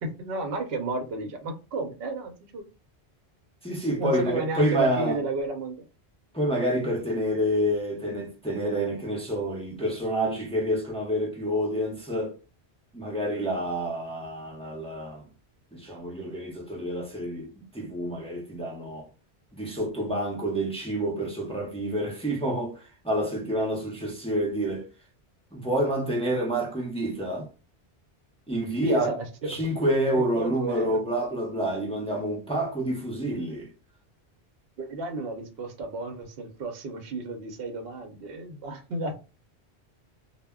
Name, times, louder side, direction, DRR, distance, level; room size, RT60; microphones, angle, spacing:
voice 1, 0.0-2.6 4.0-5.8 28.5-29.6 30.1-31.0 34.8-39.1, right 2 dB, 70° right, 0.8 m, -33 dB
voice 2, 3.6-5.2 6.3-12.3 12.9-15.2 15.7-19.1 19.5-22.7 23.0-24.9 25.5-27.5 28.5-29.1 29.5-33.7, right 1 dB, 10° left, 0.4 m, -28 dB
2.1 x 2.1 x 3.4 m
omnidirectional pair, 1.1 m